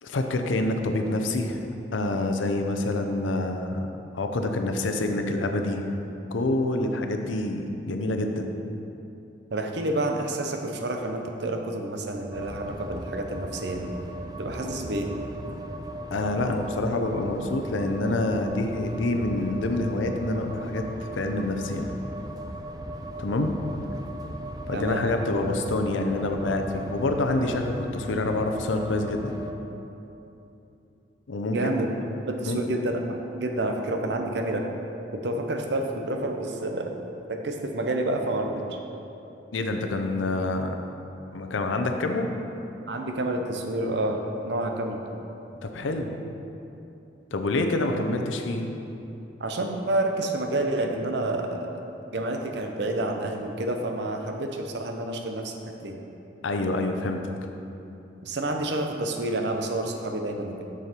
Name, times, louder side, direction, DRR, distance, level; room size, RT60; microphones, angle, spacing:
voice 1, 0.0-1.7 1.9-3.9 4.1-5.8 6.3-8.5 16.1-20.9 21.1-21.9 23.2-23.5 24.7-29.3 31.3-31.7 32.4-32.6 39.5-40.7 41.3-42.3 45.6-46.2 47.3-48.7 56.4-57.2, left 2 dB, 90° left, 5 dB, 0.6 m, -27 dB
voice 2, 9.5-13.9 14.4-15.1 24.7-25.1 31.5-31.9 32.3-34.6 35.1-38.8 42.9-45.0 49.4-51.7 52.1-55.5 55.8-56.0 58.2-60.6, right 1 dB, 65° right, 4 dB, 0.7 m, -29 dB
sound 1, 12.3-29.5, right 1 dB, 20° right, 0.3 m, -37 dB
6.7 x 6.4 x 4.4 m, 2.9 s
head